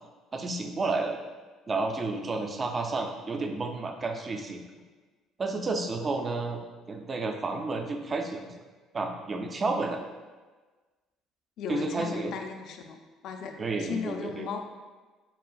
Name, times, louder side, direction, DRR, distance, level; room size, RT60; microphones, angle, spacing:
voice 1, 0.3-1.2 1.7-4.6 5.4-8.5 8.9-10.0 11.7-12.3 13.6-14.5, right 3 dB, 30° right, 4 dB, 0.5 m, -31 dB
voice 2, 11.6-13.0 13.2-14.7, left 6 dB, 65° left, 4 dB, 0.4 m, -36 dB
7.2 x 2.4 x 2.3 m, 1.3 s
cardioid pair, 100°, 0 cm